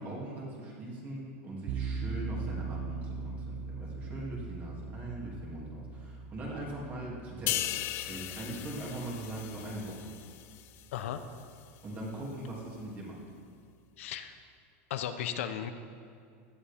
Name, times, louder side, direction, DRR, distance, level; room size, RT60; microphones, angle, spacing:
voice 1, 0.0-7.8 8.0-10.1 11.8-13.2, right 1 dB, 20° right, -3 dB, 2.7 m, -41 dB
sound 1, 1.7-10.5, right 4 dB, 45° right, 0.7 m, -41 dB
sound 2, 7.5-11.0 11.4-11.6, left 14 dB, 30° left, 0.4 m, -37 dB
voice 2, 14.0-14.3 14.9-15.7, left 9 dB, 75° left, 8 dB, 0.8 m, -35 dB
17.0 x 13.0 x 3.6 m, 2.3 s
supercardioid pair, 170°, 7 cm